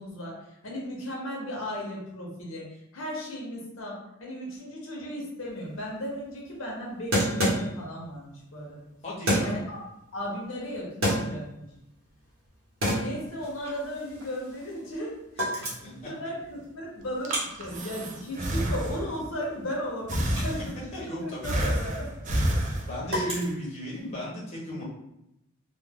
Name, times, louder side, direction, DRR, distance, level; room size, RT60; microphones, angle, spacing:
voice 1, 0.0-8.9 9.4-9.8 10.1-11.7 12.9-20.8 21.2-22.4 23.0-23.2, equal, 70° left, -2 dB, 0.7 m, -36 dB
Thermos foley, 5.5-5.6 5.8-5.9 7.1-8.1 9.3-9.8 10.7-11.7 12.1-12.5 12.8-15.0 15.3-16.0 16.4-20.6 20.9-24.1, equal, 75° right, 0.9 m, -30 dB
voice 2, 9.0-9.6 15.6-16.1 20.9-21.7 22.8-24.8, equal, 30° left, -5 dB, 0.8 m, -35 dB
Breathing, 17.0-19.3 20.1-21.0 21.4-23.3, right 1 dB, 40° right, 0.4 m, -29 dB
2.2 x 2.2 x 3.4 m, 0.85 s
head